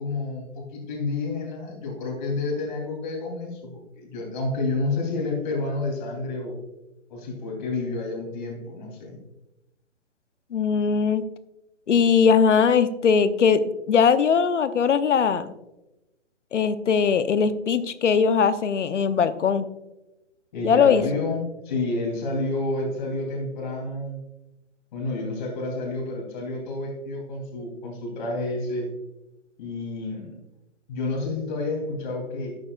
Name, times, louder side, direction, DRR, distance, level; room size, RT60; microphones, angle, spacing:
voice 1, 0.0-6.6 7.1-9.2 20.5-24.2 24.9-28.9 29.6-30.4 30.9-32.6, left 2 dB, 40° left, -2 dB, 3.2 m, -29 dB
voice 2, 10.5-11.2 11.9-13.6 13.9-15.5 16.5-19.7 20.6-21.0, left 6 dB, 75° left, 13 dB, 0.9 m, -20 dB
11.5 x 8.5 x 2.4 m, 0.95 s
hypercardioid pair, 155°, 36 cm